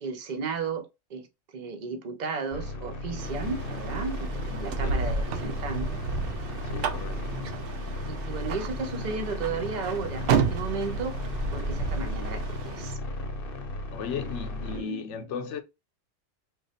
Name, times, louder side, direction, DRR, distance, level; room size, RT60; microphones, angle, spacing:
voice 1, 0.0-1.3 1.5-6.0 7.6-7.8 8.1-11.2 11.5-13.0 14.7-15.1, right 4 dB, 45° right, 0.7 m, -34 dB
sound 1, 2.5-14.8, left 2 dB, 55° left, 0.9 m, -35 dB
sound 2, 3.2-13.0, right 5 dB, 75° right, 0.9 m, -32 dB
voice 2, 6.6-7.3 11.6-12.0 13.9-15.6, left 7 dB, 80° left, 0.9 m, -36 dB
3.2 x 2.3 x 4.1 m
omnidirectional pair, 1.2 m